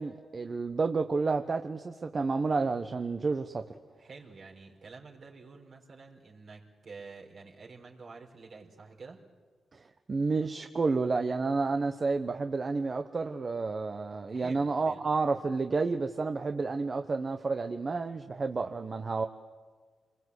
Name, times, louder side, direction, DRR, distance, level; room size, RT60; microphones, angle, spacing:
voice 1, 0.0-3.6 9.7-9.8 10.1-19.3, right 4 dB, 45° right, 6 dB, 1.2 m, -30 dB
voice 2, 4.0-9.2 14.3-15.0, right 4 dB, 65° right, -1 dB, 4.4 m, -49 dB
26.5 x 21.5 x 8.3 m, 1.5 s
supercardioid pair, 55°, 0 cm